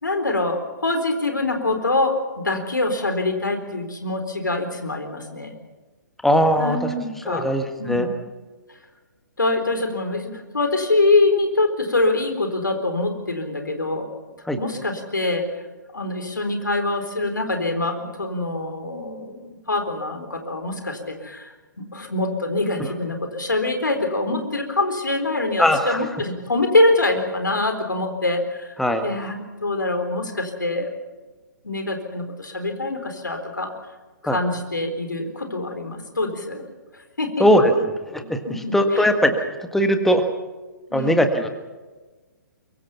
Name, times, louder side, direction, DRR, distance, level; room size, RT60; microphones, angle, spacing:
voice 1, 0.0-5.5 6.6-7.5 7.8-8.2 9.4-14.1 14.6-15.4 15.9-28.7 29.0-30.9 31.6-33.7 34.2-36.6 37.2-37.5 38.2-39.1 40.9-41.2, left 2 dB, 75° left, 6 dB, 4.0 m, -24 dB
voice 2, 6.2-6.9 7.2-8.1 14.5-14.6 25.6-26.0 28.8-29.0 34.2-34.4 37.4-37.7 38.1-39.3 39.7-40.3 40.9-41.5, equal, ahead, 6 dB, 1.6 m, -19 dB
23.5 x 23.0 x 5.8 m, 1.3 s
figure-of-eight pair, 125°, 10 cm